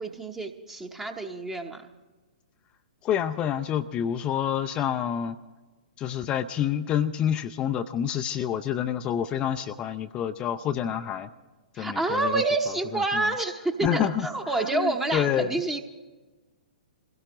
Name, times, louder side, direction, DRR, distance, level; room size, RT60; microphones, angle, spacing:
voice 1, 0.0-1.8 11.7-15.8, right 3 dB, 10° right, 4 dB, 0.9 m, -28 dB
voice 2, 3.0-5.4 6.0-11.3 11.8-12.4 12.9-13.0 13.8-15.6, left 9 dB, 20° left, 9 dB, 0.5 m, -28 dB
26.0 x 17.0 x 3.0 m, 1.2 s
figure-of-eight pair, 115°, 4 cm